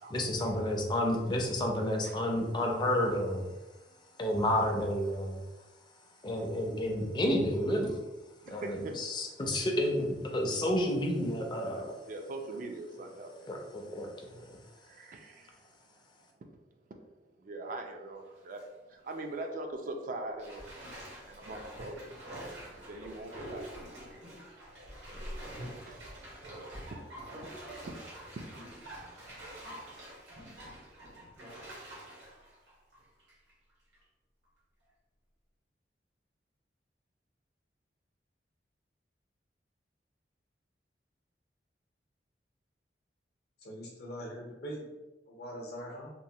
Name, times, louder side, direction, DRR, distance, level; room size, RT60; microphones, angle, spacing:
voice 1, 0.1-3.5 4.2-5.4 6.2-8.0 8.5-11.9 13.5-14.6, left 1 dB, 25° left, 1 dB, 0.4 m, -30 dB
voice 2, 8.5-9.0 12.1-13.7 14.8-15.6 17.4-20.6 21.1-24.0 25.3-26.7 27.4-27.6, right 2 dB, 50° right, 4 dB, 0.3 m, -43 dB
Bathtub (filling or washing), 18.2-18.6 19.1-19.2 20.4-33.5 33.9-34.0, right 1 dB, 85° right, 1.0 m, -46 dB
voice 3, 43.6-44.8 45.3-46.1, equal, 65° left, 0 dB, 0.7 m, -42 dB
3.0 x 2.1 x 2.7 m, 1.1 s
head